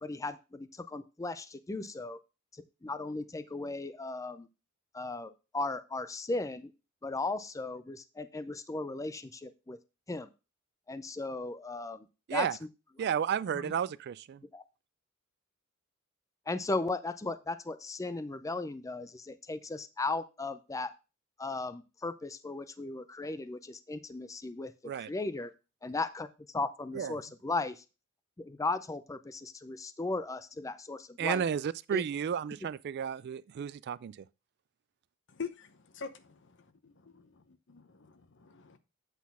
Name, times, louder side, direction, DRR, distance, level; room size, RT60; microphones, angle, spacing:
voice 1, 0.0-2.2 2.5-4.5 4.9-6.7 7.0-9.8 10.1-10.3 10.9-12.1 12.3-12.5 14.5-14.6 16.5-20.9 21.4-25.5 25.8-26.3 26.5-27.8 28.4-31.4 31.9-32.0, left 3 dB, 15° left, 0.4 m, -36 dB
voice 2, 13.0-14.4 24.8-25.1 26.9-27.1 31.2-34.2, right 8 dB, 50° right, 0.3 m, -32 dB
voice 3, 35.3-36.5 37.7-38.8, left 5 dB, 60° left, 0.9 m, -43 dB
8.3 x 4.1 x 5.4 m
head